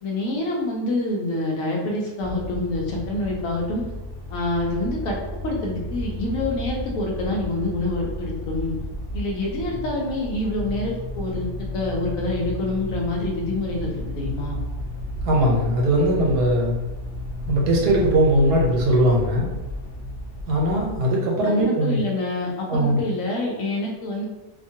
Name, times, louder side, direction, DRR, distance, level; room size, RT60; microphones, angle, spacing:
voice 1, 0.0-3.9 4.3-8.8 9.1-14.6 21.4-24.2, left 2 dB, 65° left, -1 dB, 1.0 m, -27 dB
sound 1, 2.2-21.0, left 1 dB, 55° right, 0.6 m, -33 dB
voice 2, 15.2-16.7 17.4-19.5 20.5-22.0 22.7-23.0, right 1 dB, 80° right, -2 dB, 1.3 m, -20 dB
2.9 x 2.3 x 2.7 m, 1.0 s
omnidirectional pair, 1.8 m